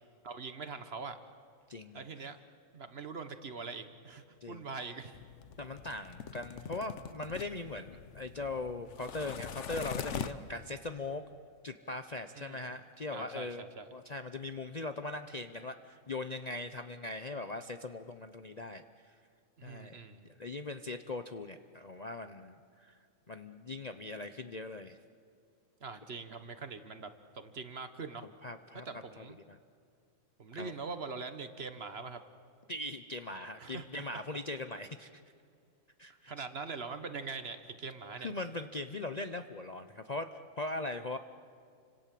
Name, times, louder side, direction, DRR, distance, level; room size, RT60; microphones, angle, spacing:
voice 1, 0.2-1.2 1.9-2.4 2.7-5.2 12.4-12.6 13.1-13.9 19.6-20.2 25.8-28.2 28.7-29.4 30.4-32.2 33.6-34.4 36.3-38.3, right 4 dB, 50° right, 10 dB, 1.4 m, -43 dB
voice 2, 1.7-2.0 4.4-4.6 5.6-11.2 11.6-13.6 13.9-19.1 19.6-20.0 20.4-23.0 23.3-25.0 28.4-28.9 29.2-29.6 30.5-30.7 32.7-35.2 36.0-36.4 38.2-41.2, left 2 dB, 40° left, 8 dB, 0.7 m, -40 dB
sound 1, 5.1-10.7, left 7 dB, 60° left, 1.2 m, -43 dB
30.0 x 25.5 x 7.6 m, 2.3 s
omnidirectional pair, 1.5 m